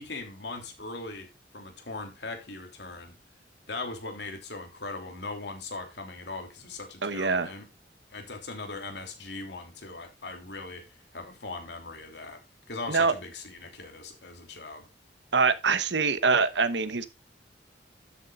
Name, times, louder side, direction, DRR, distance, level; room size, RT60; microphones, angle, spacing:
voice 1, 0.0-3.2 3.7-7.7 8.1-12.4 12.7-14.9, left 3 dB, 70° left, 3.2 m, -39 dB
voice 2, 7.0-7.5 12.9-13.1 15.3-17.1, right 4 dB, 75° right, 1.0 m, -24 dB
12.5 x 8.2 x 2.5 m
head